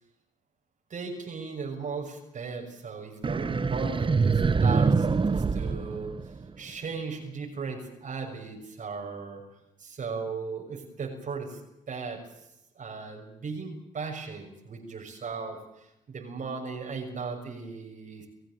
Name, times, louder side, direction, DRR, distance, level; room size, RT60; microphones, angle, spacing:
voice 1, 0.9-6.1 6.6-9.4 9.8-11.6 11.9-12.2 12.8-18.3, right 5 dB, 50° right, 1 dB, 6.6 m, -37 dB
sound 1, 3.2-6.7, right 4 dB, 30° right, 1.4 m, -25 dB
28.5 x 15.5 x 7.8 m, 0.85 s
hypercardioid pair, 55°, 16 cm